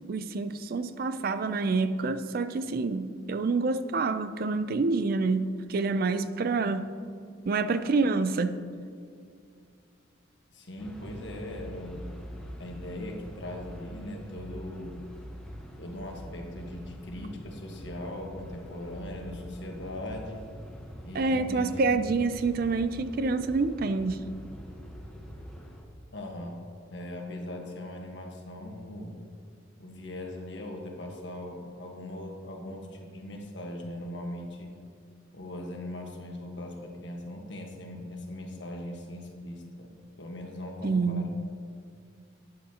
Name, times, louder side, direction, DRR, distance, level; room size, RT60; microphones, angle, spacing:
voice 1, 0.1-6.9 7.4-8.5 21.1-24.2 40.8-41.2, right 3 dB, 50° right, 11 dB, 0.4 m, -27 dB
voice 2, 10.5-12.0 12.6-15.0 15.8-20.4 21.0-22.0 26.1-26.6 26.9-29.2 29.8-34.7 35.3-39.9 40.2-41.2, left 1 dB, 60° left, 1 dB, 1.4 m, -39 dB
sound 1, 10.8-25.8, equal, 5° left, 1.1 m, -44 dB
12.0 x 9.4 x 2.9 m, 2.3 s
head